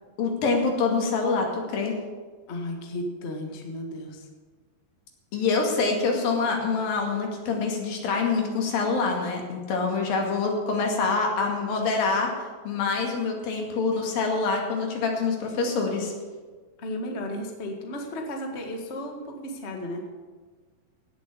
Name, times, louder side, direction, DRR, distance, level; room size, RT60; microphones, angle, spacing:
voice 1, 0.2-1.9 5.3-12.3 12.6-16.1, left 4 dB, 70° left, 1 dB, 3.9 m, -25 dB
voice 2, 2.5-4.3 16.8-20.1, left 1 dB, 40° left, 2 dB, 0.9 m, -34 dB
17.5 x 7.7 x 7.2 m, 1.4 s
omnidirectional pair, 4.3 m